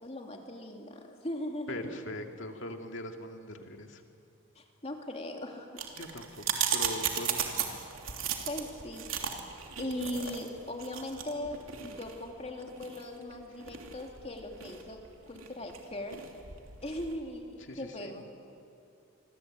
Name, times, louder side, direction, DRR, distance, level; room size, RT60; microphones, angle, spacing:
voice 1, 0.0-2.0 4.5-5.7 8.5-15.0 15.3-16.2 16.8-18.2, left 1 dB, 30° left, 2 dB, 2.8 m, -39 dB
voice 2, 1.7-4.0 6.0-7.8 17.7-18.1, left 1 dB, 65° left, 4 dB, 2.3 m, -41 dB
sound 1, 5.8-17.2, right 8 dB, 85° right, 3.1 m, -36 dB
27.5 x 24.0 x 8.9 m, 2.6 s
head